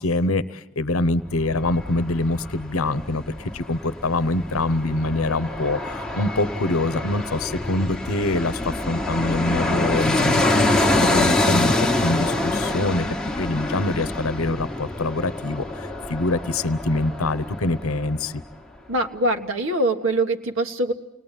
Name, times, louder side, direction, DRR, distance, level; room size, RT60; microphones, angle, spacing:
voice 1, 0.0-11.7 12.0-18.4, left 2 dB, 85° left, 14 dB, 0.9 m, -25 dB
Fixed-wing aircraft airplane, 1.3-18.2 18.5-18.6, left 2 dB, 5° left, 1.2 m, -26 dB
voice 2, 18.9-20.9, right 1 dB, 65° right, 4 dB, 1.6 m, -23 dB
29.0 x 20.5 x 9.1 m, 0.94 s
head